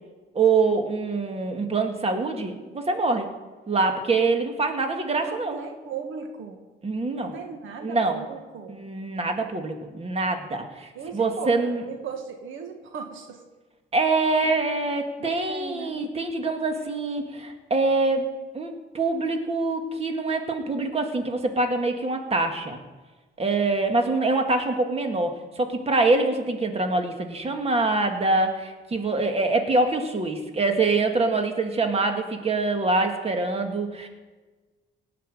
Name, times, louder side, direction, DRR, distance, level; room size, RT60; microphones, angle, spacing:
voice 1, 0.3-3.3 3.7-5.6 6.8-7.3 7.8-8.2 8.7-11.8 13.9-22.8 23.4-34.1, right 3 dB, 30° right, 4 dB, 2.0 m, -25 dB
voice 2, 5.2-6.6 7.1-8.8 10.9-13.4 15.2-16.0, right 6 dB, 80° right, 5 dB, 1.7 m, -37 dB
18.0 x 6.0 x 9.1 m, 1.3 s
cardioid pair, 90°, 20 cm